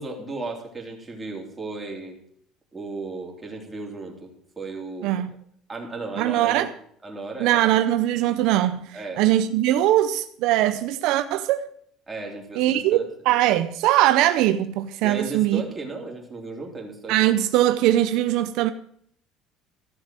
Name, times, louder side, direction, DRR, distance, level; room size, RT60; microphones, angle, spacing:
voice 1, 0.0-2.2 2.7-4.3 4.6-5.1 5.7-6.7 7.0-7.6 8.9-9.2 12.1-13.0 15.0-17.1, right 3 dB, 10° right, 3.1 m, -35 dB
voice 2, 5.0-5.3 6.2-6.7 7.4-11.7 12.5-15.6 17.1-18.7, right 13 dB, 70° right, 0.6 m, -21 dB
14.5 x 7.1 x 7.6 m
cardioid pair, 155°, 0 cm